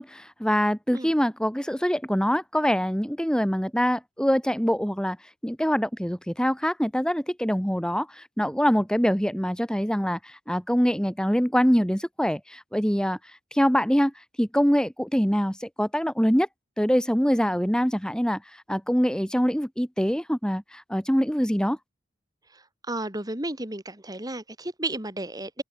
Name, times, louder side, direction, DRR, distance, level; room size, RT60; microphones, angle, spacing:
voice 1, 0.0-5.2 5.4-8.1 8.4-10.2 10.5-13.2 13.5-14.1 14.4-16.5 16.8-18.4 18.7-20.6 20.9-21.8, equal, 5° left, 3.5 m, -24 dB
voice 2, 22.5-25.6, right 2 dB, 20° right, 2.9 m, -33 dB
open air
head